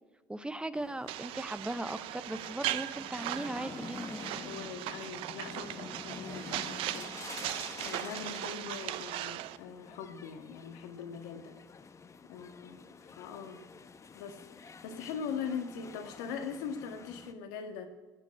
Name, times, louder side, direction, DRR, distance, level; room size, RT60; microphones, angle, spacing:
voice 1, 0.3-4.2, right 1 dB, 10° right, 13 dB, 0.8 m, -38 dB
sound 1, 0.7-17.3, left 5 dB, 35° left, 1.1 m, -48 dB
sound 2, 1.1-9.6, right 15 dB, 75° right, 0.5 m, -38 dB
voice 2, 4.4-7.1 7.8-11.5 12.3-13.6 14.1-17.9, left 6 dB, 90° left, 5 dB, 1.7 m, -41 dB
16.0 x 8.3 x 8.6 m, 1.2 s
supercardioid pair, 85°, 9 cm